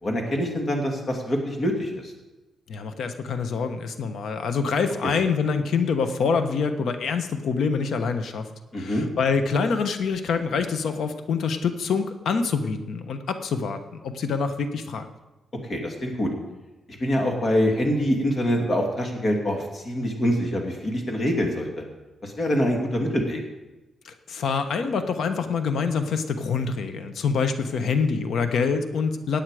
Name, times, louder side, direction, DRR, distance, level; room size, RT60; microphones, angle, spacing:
voice 1, 0.0-2.1 5.0-5.1 8.7-9.1 15.7-16.3 16.9-21.7 22.2-23.4, equal, 35° left, 2 dB, 2.5 m, -25 dB
voice 2, 2.7-8.5 8.8-15.1 24.0-29.4, left 5 dB, 70° left, 8 dB, 1.1 m, -26 dB
17.0 x 9.0 x 4.9 m, 1.1 s
cardioid pair, 130°, 0 cm